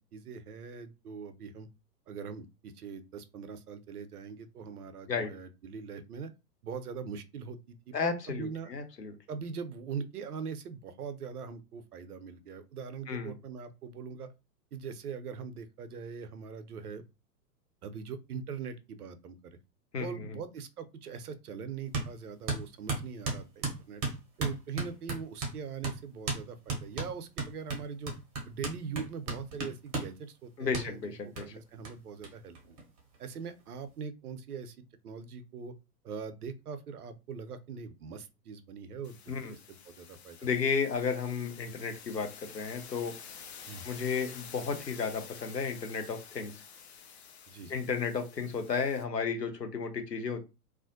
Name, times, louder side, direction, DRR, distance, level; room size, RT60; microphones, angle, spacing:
voice 1, 0.1-1.7 2.1-6.3 6.6-8.7 9.3-14.3 14.7-17.0 17.8-19.6 19.9-24.0 24.4-28.1 28.4-32.8 33.2-35.7 36.0-40.4 43.7-43.9 47.5-47.8, right 6 dB, 65° right, 10 dB, 0.6 m, -42 dB
voice 2, 7.9-9.1 13.1-13.3 19.9-20.3 30.6-31.5 39.3-39.5 40.4-43.1 43.8-46.5 47.7-50.4, left 5 dB, 85° left, 6 dB, 0.8 m, -33 dB
sound 1, 21.9-22.1 22.5-25.6 25.8-26.0 26.3-26.4 26.7-30.1 30.7-30.9 31.4-31.5 31.8-31.9 32.2-32.3 32.5-33.3, right 3 dB, 25° right, 0.6 m, -34 dB
sound 2, 39.0-49.0, left 7 dB, 45° left, 0.4 m, -50 dB
2.4 x 2.1 x 2.6 m, 0.27 s
figure-of-eight pair, 105°, 48 cm